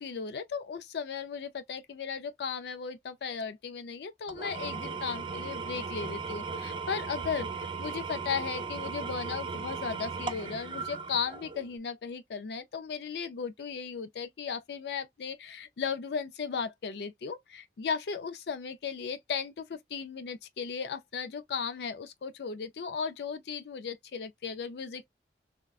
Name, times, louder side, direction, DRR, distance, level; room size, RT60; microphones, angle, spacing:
voice 1, 0.0-25.0, left 6 dB, 65° left, 0.4 m, -36 dB
Engine / Tools, 4.3-11.7, right 5 dB, 30° right, 0.4 m, -37 dB
3.5 x 2.1 x 2.3 m
head